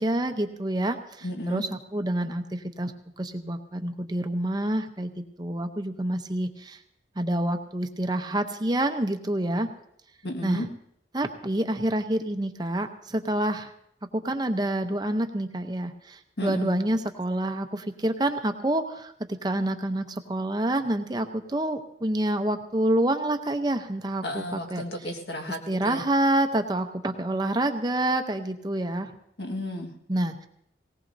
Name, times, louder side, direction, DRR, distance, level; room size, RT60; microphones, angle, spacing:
voice 1, 0.0-6.8 7.2-9.7 10.4-10.6 11.1-13.7 14.1-24.8 25.7-29.1 30.1-30.5, right 1 dB, 25° right, 7 dB, 0.7 m, -27 dB
voice 2, 1.2-1.6 10.2-10.7 16.4-16.8 24.2-26.0 29.4-29.9, left 1 dB, 70° left, 3 dB, 1.7 m, -33 dB
18.5 x 18.0 x 2.7 m, 0.74 s
head